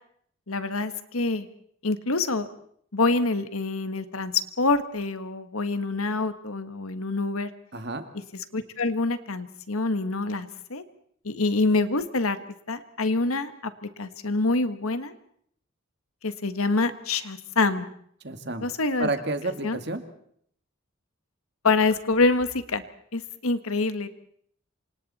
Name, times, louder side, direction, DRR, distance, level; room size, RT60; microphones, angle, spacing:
voice 1, 0.5-1.5 1.8-2.5 2.9-4.3 4.6-7.5 8.5-10.8 11.2-12.4 12.7-15.1 16.2-17.9 18.6-19.1 19.6-19.8 21.6-22.8 23.1-24.1, left 3 dB, 85° left, 10 dB, 1.5 m, -26 dB
voice 2, 7.7-8.1 18.2-18.7 19.0-20.0, right 2 dB, 50° right, 7 dB, 2.1 m, -30 dB
28.0 x 25.5 x 4.3 m, 0.66 s
head